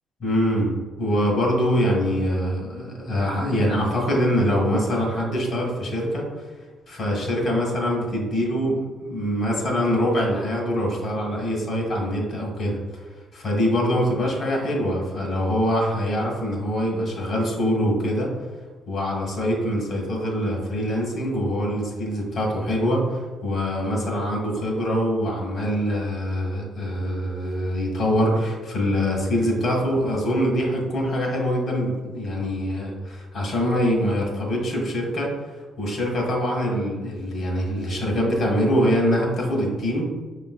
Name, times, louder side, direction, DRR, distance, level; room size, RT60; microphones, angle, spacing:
voice 1, 0.2-6.3 6.9-12.8 13.3-18.3 18.9-35.3 35.8-40.0, equal, 60° left, -1 dB, 1.5 m, -24 dB
5.5 x 3.1 x 2.2 m, 1.3 s
cardioid pair, 90°, 0 cm